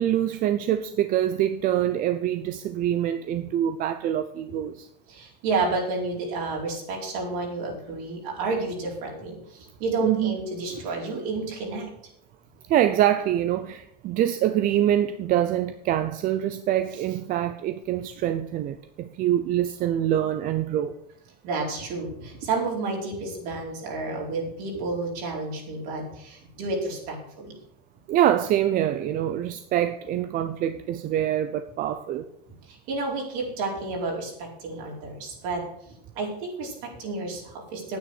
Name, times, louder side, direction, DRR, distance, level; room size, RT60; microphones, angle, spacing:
voice 1, 0.0-4.9 10.0-10.4 12.7-20.9 28.1-32.3, right 11 dB, 45° right, 0.6 m, -25 dB
voice 2, 5.1-11.9 21.4-27.5 32.5-35.6 36.1-38.0, right 3 dB, 65° right, 4.5 m, -30 dB
9.5 x 9.0 x 6.4 m
supercardioid pair, 115°, 20 cm